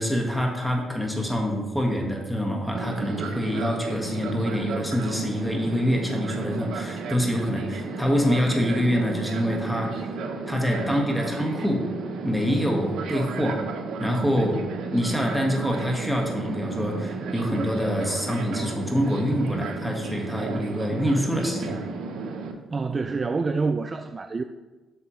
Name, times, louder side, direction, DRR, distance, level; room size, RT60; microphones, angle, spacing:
voice 1, 0.0-9.9 10.5-11.8 12.2-13.6 14.0-14.6 14.9-21.8, equal, ahead, 0 dB, 1.5 m, -25 dB
Fixed-wing aircraft airplane, 2.7-22.5, right 4 dB, 75° right, 0.7 m, -33 dB
voice 2, 22.7-24.4, right 4 dB, 30° right, 9 dB, 0.3 m, -27 dB
8.5 x 6.4 x 3.1 m, 1.2 s
cardioid pair, 90°, 0 cm